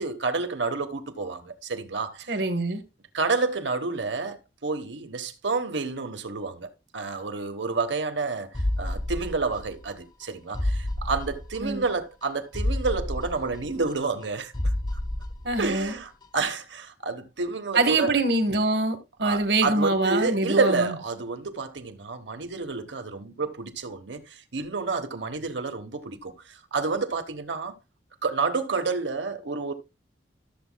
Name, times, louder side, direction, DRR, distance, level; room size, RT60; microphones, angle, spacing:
voice 1, 0.0-2.4 3.1-14.5 15.6-18.1 19.2-27.7 28.2-29.7, right 4 dB, 85° right, 1.2 m, -29 dB
voice 2, 2.3-2.8 11.6-11.8 15.4-15.9 17.7-20.9, right 2 dB, 65° right, 1.4 m, -24 dB
sound 1, 8.5-9.9 10.2-10.3 10.5-11.9 12.2-12.3 12.5-14.3 14.5-15.9 16.2-16.3, left 1 dB, 25° left, 0.6 m, -30 dB
13.5 x 7.2 x 2.3 m
head